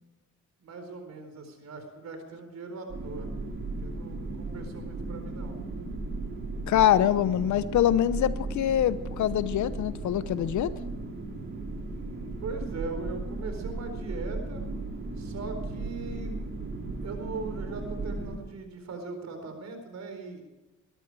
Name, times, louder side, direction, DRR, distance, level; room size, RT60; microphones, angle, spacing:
voice 1, 0.6-3.3 3.8-5.6 11.9-14.6 15.2-16.4 17.0-20.4, right 3 dB, 60° right, 6 dB, 4.3 m, -40 dB
sound 1, 2.9-18.4, right 2 dB, 40° right, 3.9 m, -36 dB
voice 2, 6.7-10.7, left 11 dB, 75° left, 15 dB, 0.9 m, -24 dB
22.0 x 13.5 x 4.8 m, 1.1 s
cardioid pair, 90°, 30 cm